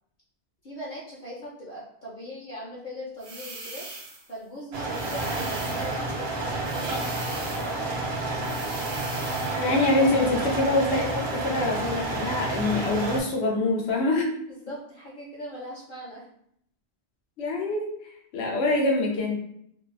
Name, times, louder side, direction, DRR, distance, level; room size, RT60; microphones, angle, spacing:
voice 1, 0.6-3.9 4.3-7.9 14.5-16.3, equal, 55° left, -7 dB, 0.7 m, -40 dB
sound 1, 3.2-4.3 4.9-6.0 6.6-7.8 8.4-9.7, right 2 dB, 45° right, 0.5 m, -40 dB
sound 2, 4.7-13.2, right 2 dB, 75° right, 0.8 m, -30 dB
voice 2, 9.6-14.3 17.4-17.9 18.3-19.4, left 2 dB, 85° left, -1 dB, 0.9 m, -25 dB
2.6 x 2.0 x 2.5 m, 0.70 s
omnidirectional pair, 1.1 m